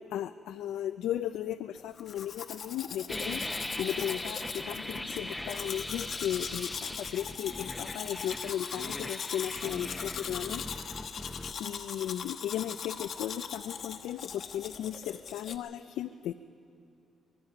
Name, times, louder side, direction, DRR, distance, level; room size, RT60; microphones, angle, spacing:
voice 1, 0.0-11.1 11.6-16.3, left 11 dB, 85° left, 9 dB, 0.4 m, -36 dB
Domestic sounds home sounds, 1.9-15.6, left 7 dB, 60° left, 1.2 m, -40 dB
sound 1, 3.1-11.5, left 1 dB, 10° left, 0.8 m, -40 dB
24.5 x 19.0 x 5.8 m, 2.6 s
cardioid pair, 90°, 0 cm